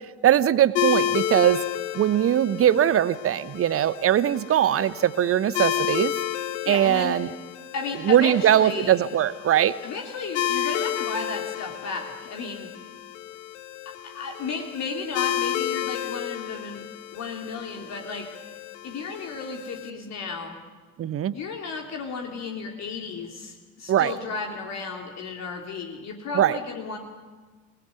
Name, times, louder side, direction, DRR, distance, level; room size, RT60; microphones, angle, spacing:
voice 1, 0.2-1.6 1.9-6.1 6.7-7.3 8.0-9.7 21.0-21.3 23.9-24.1 26.3-26.6, right 11 dB, 35° right, 17 dB, 1.1 m, -21 dB
sound 1, 0.7-19.9, left 11 dB, 60° left, 1.7 m, -31 dB
voice 2, 6.6-7.2 7.7-8.9 9.8-12.7 13.8-16.9 17.1-18.3 18.8-20.6 21.3-27.0, left 4 dB, 40° left, 2 dB, 3.4 m, -34 dB
28.5 x 20.5 x 9.5 m, 1.4 s
figure-of-eight pair, 60°, 41 cm